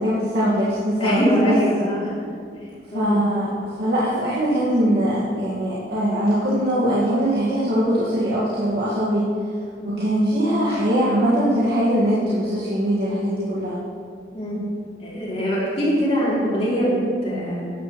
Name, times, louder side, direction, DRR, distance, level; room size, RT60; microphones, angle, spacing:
voice 1, 0.0-1.5 2.9-9.2 9.8-13.8, equal, 60° right, -10 dB, 1.9 m, -21 dB
voice 2, 1.0-2.1 2.9-3.2 9.8-9.9 14.3-14.6 15.0-17.6, equal, 35° left, -6 dB, 3.1 m, -22 dB
13.5 x 10.0 x 3.2 m, 2.2 s
head